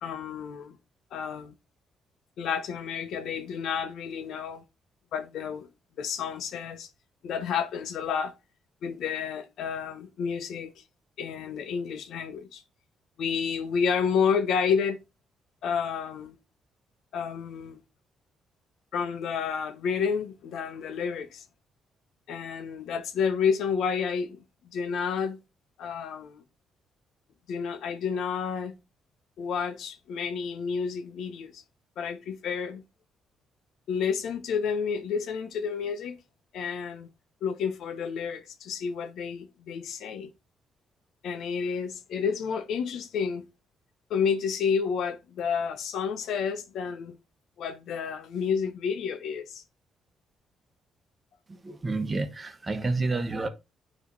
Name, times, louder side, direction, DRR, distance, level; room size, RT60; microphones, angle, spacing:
voice 1, 0.0-0.8 1.1-1.5 2.4-4.6 5.1-5.7 6.0-6.9 7.2-8.3 8.8-10.7 11.2-12.6 13.2-15.0 15.6-16.3 17.1-17.8 18.9-21.4 22.3-24.4 24.7-25.4 25.8-26.4 27.5-28.7 29.4-31.6 32.0-32.8 33.9-36.2 36.5-37.1 37.4-40.3 41.2-43.5 44.1-47.2 47.6-49.6, left 6 dB, 75° left, 1.0 m, -30 dB
voice 2, 51.5-53.5, right 3 dB, 25° right, 1.1 m, -29 dB
9.3 x 3.3 x 4.0 m
cardioid pair, 90°, 0 cm